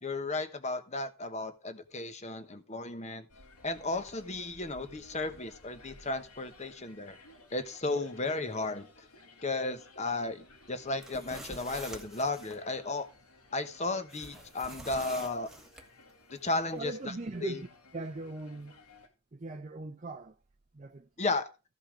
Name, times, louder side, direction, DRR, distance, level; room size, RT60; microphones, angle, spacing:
voice 1, 0.0-3.3 3.6-7.2 7.5-9.1 9.4-13.1 13.5-15.5 16.3-17.1 17.4-17.6 21.2-21.5, left 2 dB, 30° left, 1.1 m, -34 dB
sound 1, 3.3-19.1, left 2 dB, 85° left, 2.3 m, -57 dB
sound 2, 10.9-12.6 14.1-15.9, right 1 dB, ahead, 1.2 m, -47 dB
voice 2, 16.7-17.7 17.9-18.8 19.3-20.4 20.7-21.3, right 2 dB, 35° right, 0.6 m, -39 dB
14.0 x 5.5 x 5.1 m
head